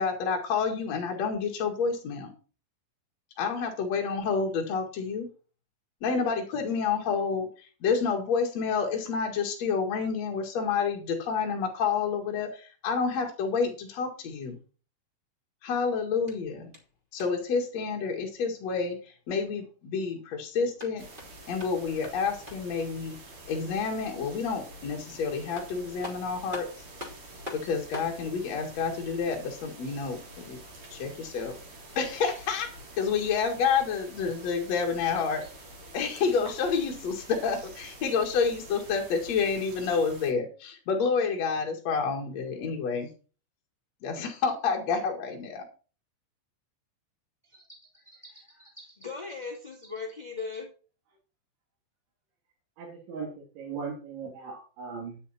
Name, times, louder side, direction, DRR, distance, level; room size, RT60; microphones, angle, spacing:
voice 1, 0.0-2.3 3.4-5.3 6.0-14.5 15.6-16.7 17.1-21.0 21.5-23.2 23.5-26.7 27.5-30.6 30.9-31.6 32.0-35.4 35.9-43.1 44.0-45.6, left 5 dB, 55° left, 1 dB, 2.0 m, -29 dB
sound 1, 16.2-17.5 20.6-22.8 25.1-25.2 25.5-28.2, left 2 dB, 15° right, 2.0 m, -44 dB
sound 2, 21.0-40.3, right 1 dB, 40° right, 3.8 m, -47 dB
voice 2, 48.0-50.7, left 4 dB, 70° left, 0 dB, 0.4 m, -40 dB
voice 3, 52.8-55.2, right 5 dB, 65° right, -2 dB, 4.7 m, -38 dB
10.5 x 9.4 x 4.3 m, 0.36 s
omnidirectional pair, 5.8 m